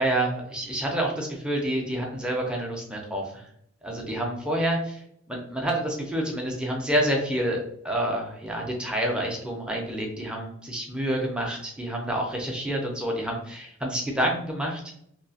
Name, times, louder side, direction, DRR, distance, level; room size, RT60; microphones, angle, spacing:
voice 1, 0.0-3.5 3.8-14.8, right 1 dB, 5° right, -1 dB, 0.6 m, -28 dB
2.9 x 2.7 x 2.7 m, 0.68 s
head